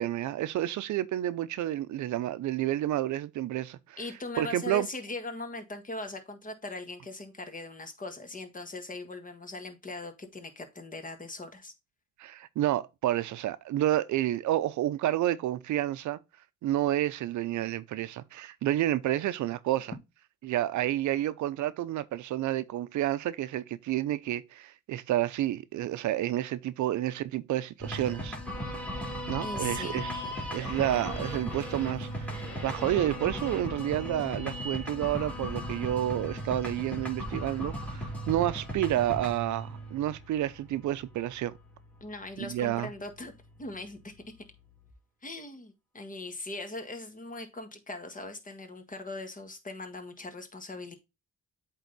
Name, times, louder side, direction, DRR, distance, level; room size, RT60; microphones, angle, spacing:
voice 1, 0.0-4.0 4.4-4.9 12.2-16.2 16.6-19.9 20.4-28.4 29.3-30.2 30.5-41.5 42.4-42.9, right 13 dB, 70° right, 0.6 m, -30 dB
voice 2, 4.0-11.7 29.4-30.0 42.0-43.3 43.6-44.1 45.2-51.0, left 2 dB, 25° left, 1.7 m, -40 dB
sound 1, 27.8-44.9, equal, 5° left, 3.0 m, -38 dB
8.2 x 3.8 x 4.0 m
cardioid pair, 90°, 30 cm